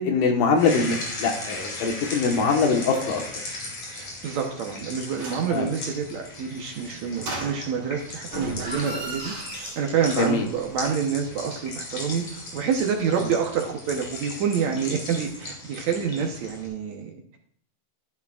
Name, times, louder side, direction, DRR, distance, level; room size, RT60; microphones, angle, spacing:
voice 1, 0.0-3.2 5.5-5.7 10.2-10.5 13.2-13.3, left 4 dB, 75° left, 3 dB, 2.8 m, -23 dB
sound 1, 0.5-16.7, left 2 dB, 55° left, 4.0 m, -38 dB
voice 2, 3.9-17.4, right 7 dB, 70° right, 2 dB, 1.9 m, -27 dB
sound 2, 5.1-5.6 7.2-7.9 8.3-10.5 10.8-10.9, right 1 dB, 45° right, 3.7 m, -36 dB
14.0 x 10.5 x 2.4 m, 0.63 s
omnidirectional pair, 4.0 m